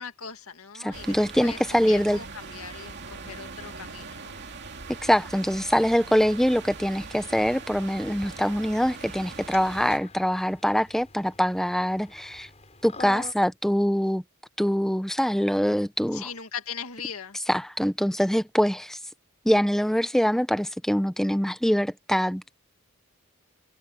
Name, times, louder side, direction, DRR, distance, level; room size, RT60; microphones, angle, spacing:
voice 1, 0.0-4.4 16.1-17.4, left 7 dB, 80° left, 2.1 m, -39 dB
voice 2, 0.8-2.2 4.9-12.5 12.8-14.2 14.6-16.3 17.5-19.0 19.4-22.6, equal, ahead, 0.7 m, -24 dB
sound 1, 0.9-10.0, right 4 dB, 50° right, 2.7 m, -41 dB
sound 2, 8.1-13.3, left 3 dB, 30° left, 6.8 m, -46 dB
head